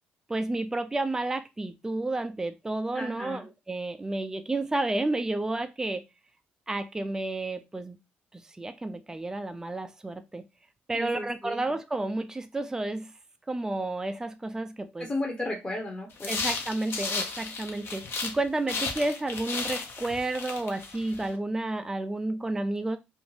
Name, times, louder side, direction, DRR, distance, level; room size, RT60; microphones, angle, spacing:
voice 1, 0.3-6.0 6.7-8.0 8.6-10.4 10.9-13.1 13.5-15.1 16.3-23.0, right 2 dB, 10° right, 0.4 m, -31 dB
voice 2, 2.9-3.4 10.9-11.6 15.0-16.4, left 1 dB, 20° left, 0.8 m, -34 dB
sound 1, 16.2-18.4 18.7-21.3, left 4 dB, 55° left, 0.6 m, -34 dB
2.5 x 2.2 x 3.1 m
supercardioid pair, 60°, 5 cm